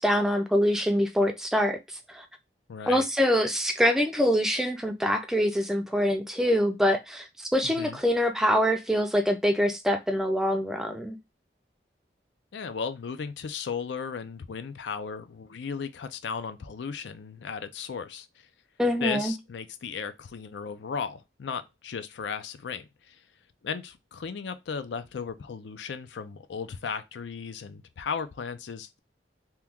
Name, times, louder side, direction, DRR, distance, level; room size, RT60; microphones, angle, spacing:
voice 1, 0.0-2.2 2.9-11.2 18.8-19.3, equal, 5° right, 0.4 m, -25 dB
voice 2, 2.7-3.0 7.6-8.0 12.5-18.5 19.0-23.2 23.6-29.0, left 6 dB, 85° left, 0.4 m, -36 dB
3.0 x 2.2 x 3.4 m
head